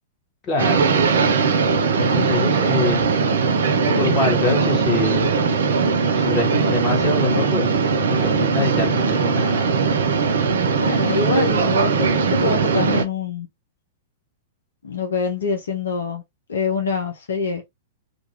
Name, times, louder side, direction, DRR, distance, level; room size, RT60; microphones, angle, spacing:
voice 1, 0.4-1.2 2.0-3.1 3.9-5.3 6.1-9.6, left 4 dB, 35° left, 1.4 m, -25 dB
sound 1, 0.6-13.1, right 5 dB, 70° right, 0.5 m, -19 dB
voice 2, 10.8-13.5 14.8-16.2 16.5-17.6, left 4 dB, 75° left, 0.6 m, -25 dB
2.6 x 2.3 x 2.8 m
figure-of-eight pair, 105°, 0 cm